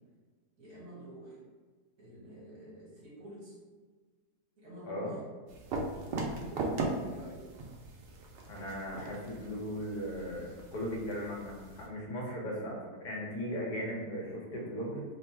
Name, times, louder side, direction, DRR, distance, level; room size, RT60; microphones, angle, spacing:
voice 1, 0.6-1.4 2.0-3.6 4.6-5.2 6.1-6.7 7.1-7.4, right 1 dB, 55° right, -7 dB, 1.7 m, -49 dB
voice 2, 4.8-5.1 8.5-15.0, equal, 75° left, -4 dB, 1.5 m, -37 dB
sound 1, 5.5-11.9, right 3 dB, 90° right, 1.3 m, -39 dB
3.6 x 2.1 x 4.4 m, 1.5 s
omnidirectional pair, 1.8 m